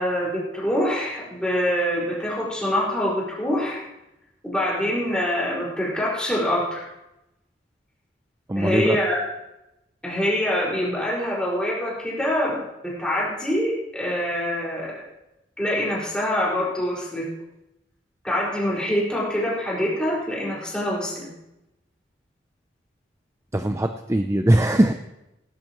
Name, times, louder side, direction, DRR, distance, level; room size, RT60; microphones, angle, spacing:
voice 1, 0.0-3.8 4.4-6.9 8.6-9.2 10.0-12.6 12.8-15.0 15.6-17.3 18.2-21.3, equal, 5° left, -6 dB, 5.4 m, -25 dB
voice 2, 8.5-9.0 23.5-24.9, right 1 dB, 15° right, 7 dB, 0.5 m, -20 dB
18.0 x 12.5 x 3.1 m, 0.91 s
head